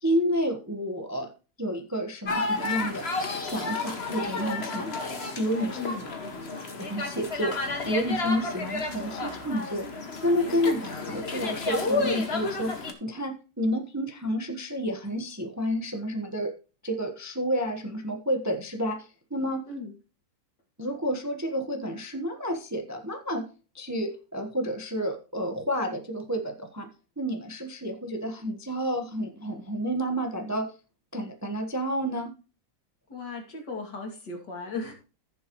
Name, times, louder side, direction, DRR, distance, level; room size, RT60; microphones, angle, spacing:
voice 1, 0.0-1.3 1.6-3.1 3.4-4.9 5.3-5.8 6.8-7.6 7.8-9.9 10.2-16.5 16.8-19.6 20.8-23.4 23.7-26.9 27.2-30.7 31.1-32.3, equal, 10° right, 5 dB, 0.9 m, -30 dB
sound 1, 2.3-12.9, left 3 dB, 35° left, 1.8 m, -31 dB
voice 2, 5.7-6.2 19.7-19.9 33.1-34.9, left 3 dB, 65° left, 2 dB, 3.2 m, -36 dB
15.0 x 7.1 x 3.1 m, 0.34 s
omnidirectional pair, 2.0 m